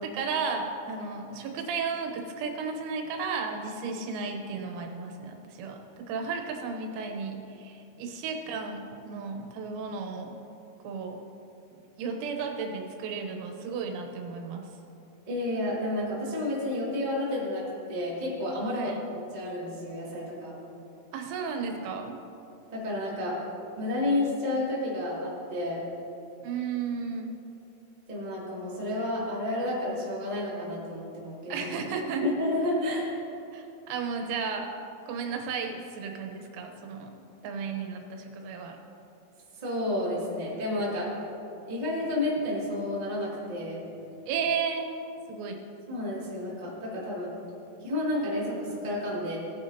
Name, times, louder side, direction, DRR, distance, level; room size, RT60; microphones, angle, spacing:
voice 1, 0.0-10.3 10.8-11.2 12.0-14.7 18.7-19.0 21.1-22.2 26.4-27.3 31.5-32.3 33.5-34.7 35.1-37.1 37.4-38.8 44.3-44.9 45.3-45.6, right 5 dB, 90° right, 3 dB, 3.8 m, -34 dB
voice 2, 15.3-18.9 19.3-20.5 22.7-23.4 23.8-25.8 28.1-31.7 32.2-33.1 39.6-41.1 41.7-43.8 45.9-47.3 47.8-49.4, left 1 dB, 70° right, -8 dB, 0.4 m, -31 dB
18.0 x 9.6 x 2.8 m, 2.7 s
omnidirectional pair, 6.0 m